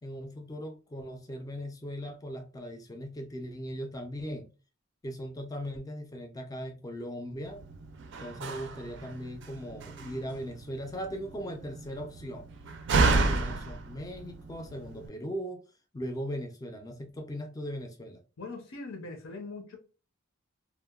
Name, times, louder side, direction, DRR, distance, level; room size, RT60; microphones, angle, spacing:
voice 1, 0.0-4.5 5.0-7.6 8.2-12.5 12.9-15.6 15.9-18.2, equal, 15° left, 0.4 m, -39 dB
Slam, 7.5-15.1, right 3 dB, 60° right, 0.4 m, -32 dB
voice 2, 18.4-19.8, left 3 dB, 70° left, 0.6 m, -41 dB
2.8 x 2.1 x 2.2 m
head